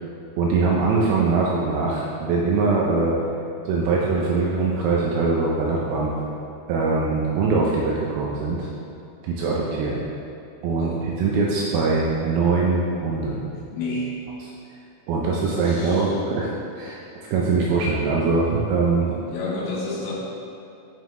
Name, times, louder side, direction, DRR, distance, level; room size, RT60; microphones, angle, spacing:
voice 1, 0.4-3.2 3.7-6.2 6.7-8.7 9.2-10.0 10.6-10.9 11.2-13.4 15.1-17.0 17.3-19.1, right 4 dB, 80° right, -3 dB, 2.3 m, -22 dB
voice 2, 10.8-11.4 13.7-14.3 15.5-16.2 19.3-20.1, left 2 dB, 90° left, -5 dB, 1.6 m, -31 dB
7.1 x 5.9 x 3.1 m, 2.6 s
omnidirectional pair, 4.7 m